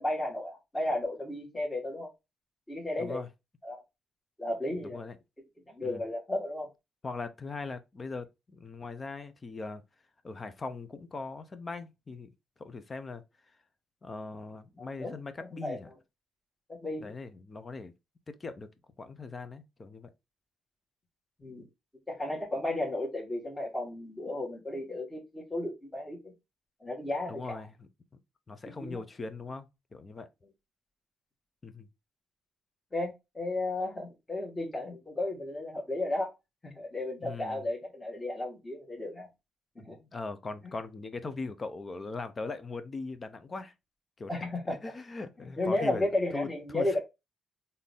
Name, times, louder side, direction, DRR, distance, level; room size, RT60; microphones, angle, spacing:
voice 1, 0.0-2.1 2.7-3.2 3.6-3.8 4.4-5.0 5.7-6.7 14.8-15.8 16.7-17.1 21.4-21.6 22.1-26.3 26.8-27.6 28.8-29.0 32.9-36.3 36.6-39.3 39.8-40.0 40.6-40.7 44.3-44.9 45.6-47.0, left 1 dB, 15° left, 1.9 m, -34 dB
voice 2, 3.0-3.3 4.8-5.2 5.8-6.0 7.0-9.8 10.2-12.3 12.6-13.2 14.0-15.9 17.0-17.9 18.3-18.7 19.0-20.1 27.3-27.9 28.5-30.3 31.6-31.9 37.2-37.6 40.0-43.7 44.2-44.4 44.7-47.0, left 3 dB, 30° left, 0.7 m, -40 dB
3.9 x 2.8 x 3.5 m
cardioid pair, 90°, 0 cm